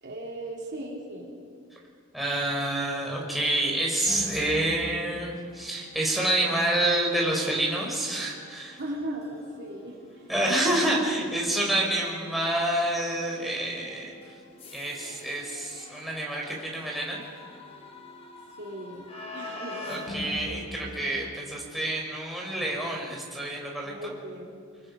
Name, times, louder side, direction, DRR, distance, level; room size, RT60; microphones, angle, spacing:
voice 1, 0.0-1.4 8.8-10.0 18.6-20.0 23.8-24.7, right 1 dB, 55° right, -2 dB, 3.5 m, -37 dB
voice 2, 2.1-8.8 10.3-14.1 14.7-17.2 19.9-24.1, right 1 dB, ahead, -3 dB, 4.5 m, -28 dB
sound 1, 4.1-21.8, left 2 dB, 25° left, 2.2 m, -44 dB
27.0 x 23.0 x 5.4 m, 2.1 s
head